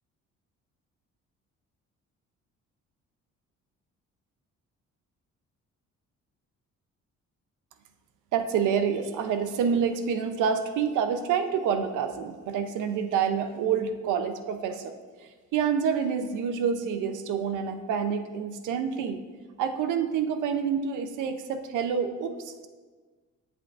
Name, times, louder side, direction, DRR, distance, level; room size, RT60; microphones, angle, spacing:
voice 1, 8.3-14.9 15.2-19.2 19.6-22.7, right 7 dB, 85° right, 9 dB, 0.6 m, -28 dB
7.7 x 7.7 x 2.4 m, 1.4 s
cardioid pair, 90°, 30 cm